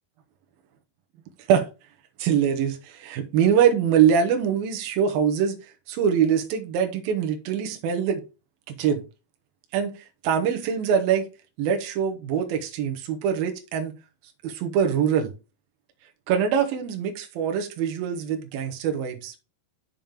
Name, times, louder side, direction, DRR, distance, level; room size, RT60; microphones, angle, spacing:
voice 1, 2.2-5.6 5.9-8.2 8.7-9.0 9.7-9.9 10.2-11.2 11.6-14.0 14.4-15.3 16.3-19.3, right 8 dB, 75° right, 2.8 m, -23 dB
7.6 x 7.1 x 3.5 m
omnidirectional pair, 4.5 m